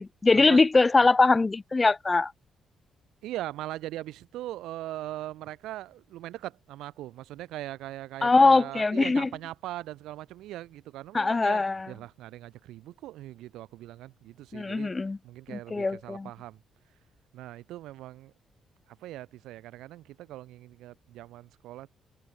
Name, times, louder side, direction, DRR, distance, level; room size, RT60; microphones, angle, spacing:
voice 1, 0.0-2.3 8.2-9.3 11.1-11.9 14.5-15.2 15.5-16.3, left 3 dB, 25° left, 0.6 m, -22 dB
voice 2, 3.2-14.9 15.2-16.6 17.3-18.3 18.9-22.0, right 15 dB, 90° right, 3.9 m, -40 dB
cardioid pair, 90°, 0 cm